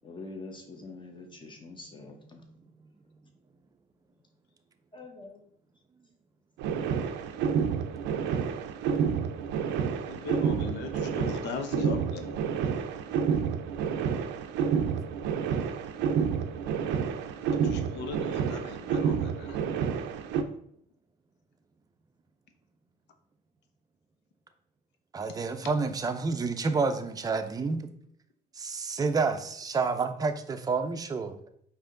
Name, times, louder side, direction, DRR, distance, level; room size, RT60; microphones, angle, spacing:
voice 1, 0.0-2.4 4.9-5.4, left 3 dB, 25° left, 3 dB, 1.0 m, -45 dB
sound 1, 6.6-20.4, right 7 dB, 80° right, 0.5 m, -29 dB
voice 2, 10.1-12.4 17.6-19.6, left 5 dB, 75° left, 6 dB, 0.7 m, -38 dB
voice 3, 25.1-27.9 28.6-31.4, right 4 dB, 20° right, 7 dB, 0.5 m, -29 dB
4.9 x 2.8 x 3.8 m, 0.66 s
cardioid pair, 100°, 18 cm